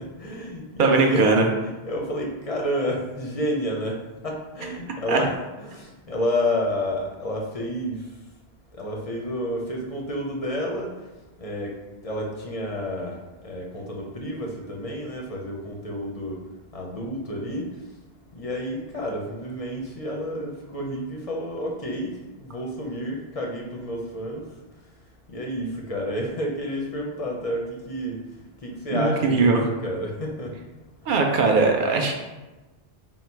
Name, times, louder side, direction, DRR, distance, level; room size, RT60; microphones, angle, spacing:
voice 1, 0.0-1.3 1.6-8.0 8.8-10.9 11.4-11.7 12.0-13.2 13.4-16.4 16.7-17.7 18.3-22.1 22.4-24.4 25.3-28.2 28.6-29.6 29.8-30.5, equal, 45° left, -1 dB, 0.5 m, -30 dB
voice 2, 0.8-1.5 5.1-5.2 28.9-29.6 31.1-32.1, right 4 dB, 55° right, 2 dB, 0.7 m, -20 dB
3.9 x 2.0 x 4.4 m, 1.1 s
omnidirectional pair, 1.2 m